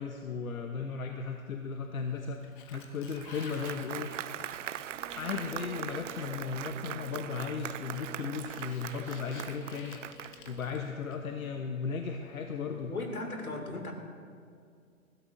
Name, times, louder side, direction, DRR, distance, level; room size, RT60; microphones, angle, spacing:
voice 1, 0.0-2.4 2.7-4.1 5.2-12.9, left 5 dB, 70° left, 4 dB, 1.1 m, -36 dB
Sliding door, 2.0-6.6 7.7-11.4, left 6 dB, 35° left, 1.2 m, -53 dB
Applause, 2.7-10.6, right 11 dB, 60° right, 0.5 m, -41 dB
sound 1, 4.9-13.2, right 2 dB, 10° right, 1.3 m, -53 dB
voice 2, 12.7-13.9, left 2 dB, 90° left, 3 dB, 2.6 m, -37 dB
20.0 x 15.5 x 2.7 m, 2.2 s
figure-of-eight pair, 130°, 43 cm